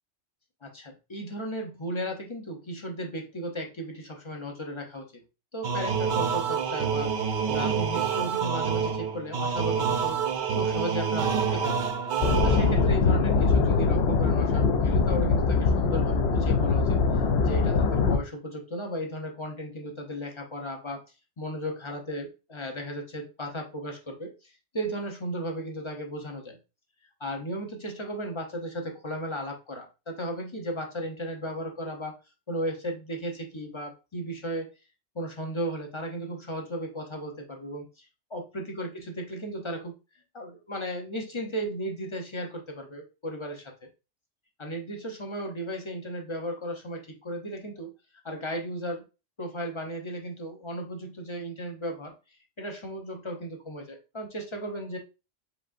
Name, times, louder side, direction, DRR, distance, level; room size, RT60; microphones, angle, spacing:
voice 1, 0.6-5.1 5.5-10.2 10.5-11.9 12.4-21.0 21.4-26.6 27.2-32.2 32.5-34.7 35.1-39.9 40.3-43.7 44.6-47.9 48.2-49.0 49.4-52.1 52.6-55.0, equal, 30° left, 2 dB, 0.7 m, -35 dB
sound 1, 5.6-13.0, right 6 dB, 55° right, 0.6 m, -27 dB
sound 2, 12.2-18.2, left 4 dB, 65° left, 0.8 m, -23 dB
5.0 x 3.5 x 2.5 m, 0.29 s
omnidirectional pair, 1.2 m